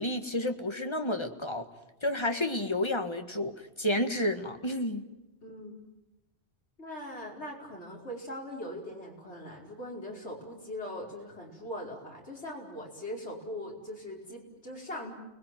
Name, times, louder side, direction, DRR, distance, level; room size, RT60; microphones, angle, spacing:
voice 1, 0.0-1.7 2.0-5.0, left 1 dB, 25° left, 6 dB, 1.7 m, -30 dB
voice 2, 5.4-5.8 6.8-15.1, left 1 dB, 75° left, -1 dB, 5.4 m, -41 dB
30.0 x 20.5 x 9.3 m, 0.98 s
omnidirectional pair, 1.2 m